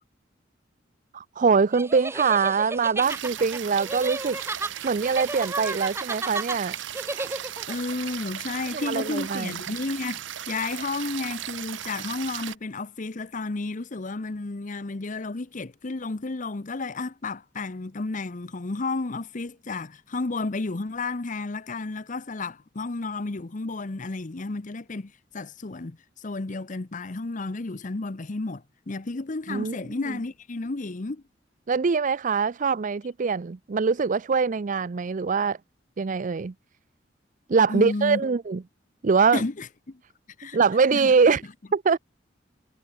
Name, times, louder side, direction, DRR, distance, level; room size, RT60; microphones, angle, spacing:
voice 1, 1.1-4.4 4.8-6.7 8.7-9.5 29.5-29.8 31.7-35.6 36.0-36.5 37.5-38.6 39.0-39.4 40.5-41.4 41.7-42.0, right 5 dB, 45° right, 0.5 m, -23 dB
sound 1, 1.7-7.7, right 2 dB, 15° right, 0.9 m, -33 dB
sound 2, 3.0-12.6, right 10 dB, 90° right, 0.8 m, -37 dB
voice 2, 7.7-31.2 37.7-38.2 39.3-40.0 40.4-40.6 40.9-41.1, left 3 dB, 45° left, 0.8 m, -32 dB
head